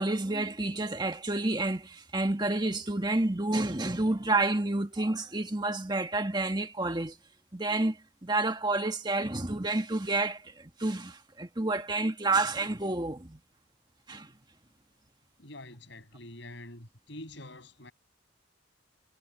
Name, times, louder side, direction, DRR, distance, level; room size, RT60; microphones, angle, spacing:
voice 1, 0.0-7.2 7.5-13.4 14.1-14.3, right 2 dB, 20° right, 1.7 m, -29 dB
voice 2, 15.4-17.9, left 1 dB, 65° left, 6.9 m, -46 dB
head